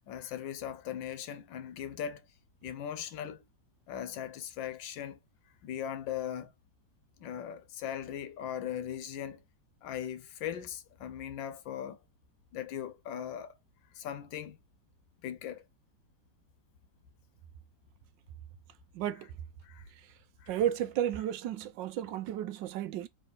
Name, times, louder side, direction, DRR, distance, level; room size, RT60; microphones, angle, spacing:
voice 1, 0.1-2.3 2.6-3.4 3.9-5.2 5.6-6.5 7.2-9.4 9.8-12.0 12.5-13.5 13.9-14.6 15.2-15.6 19.6-19.9 20.4-20.6, left 9 dB, 85° left, 1.5 m, -39 dB
voice 2, 18.9-19.3 20.5-23.1, right 11 dB, 80° right, 1.3 m, -33 dB
3.4 x 3.2 x 3.9 m
omnidirectional pair, 2.0 m